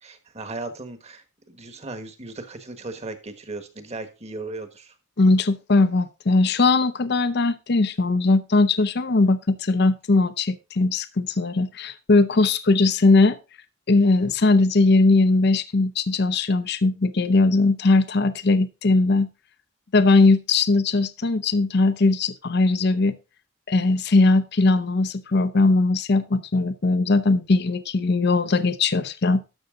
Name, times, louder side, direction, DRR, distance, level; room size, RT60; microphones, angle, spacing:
voice 1, 0.0-4.9, right 2 dB, 35° right, 9 dB, 1.5 m, -37 dB
voice 2, 5.2-13.4 13.9-19.3 19.9-23.2 23.7-29.4, left 3 dB, 55° left, 14 dB, 0.7 m, -19 dB
12.5 x 6.6 x 3.8 m, 0.29 s
head